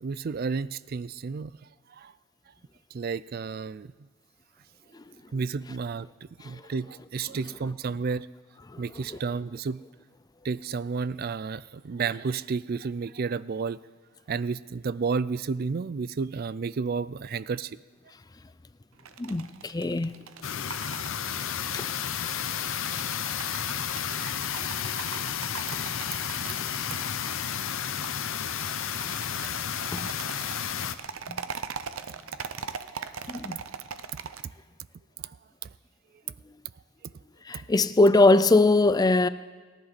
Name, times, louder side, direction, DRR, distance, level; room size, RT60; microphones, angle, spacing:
voice 1, 0.0-1.5 2.0-2.1 2.9-3.9 5.3-6.1 6.4-8.3 8.8-9.8 10.4-13.8 14.3-17.7 33.0-33.1, right 5 dB, 45° right, 0.4 m, -31 dB
sound 1, 18.9-34.4, right 6 dB, 85° right, 0.7 m, -42 dB
voice 2, 19.2-20.2 21.7-21.9 29.9-30.1 31.3-31.4 33.3-33.6 37.5-39.3, left 2 dB, 20° left, 0.4 m, -21 dB
sound 2, 20.4-30.9, left 8 dB, 75° left, 0.7 m, -32 dB
28.5 x 10.5 x 4.2 m
head